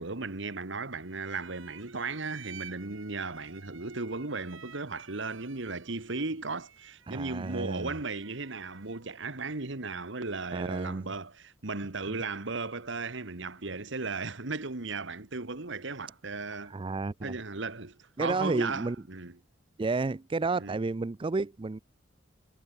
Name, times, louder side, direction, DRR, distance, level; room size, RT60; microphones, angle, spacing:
voice 1, 0.0-16.7 17.2-19.4 20.6-20.8, right 3 dB, 65° right, 1.6 m, -36 dB
sound 1, 1.0-9.2, right 8 dB, 85° right, 5.8 m, -52 dB
voice 2, 7.1-7.9 10.5-11.1 12.1-12.2 16.7-17.3 18.2-19.0 19.8-21.8, right 3 dB, 25° right, 0.4 m, -31 dB
head